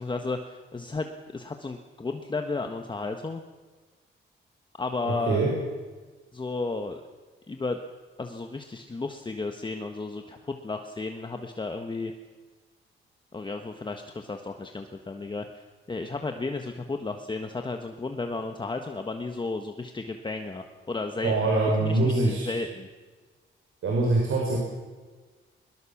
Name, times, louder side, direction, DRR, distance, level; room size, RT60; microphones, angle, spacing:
voice 1, 0.0-3.4 4.8-5.5 6.3-7.0 7.5-7.8 8.2-12.1 13.3-21.5 21.8-22.9, left 3 dB, 20° left, 5 dB, 1.3 m, -33 dB
voice 2, 5.1-5.5 21.2-22.5 23.8-24.6, right 2 dB, 75° right, -2 dB, 5.7 m, -24 dB
22.0 x 22.0 x 7.3 m, 1.4 s
wide cardioid pair, 130°, 21 cm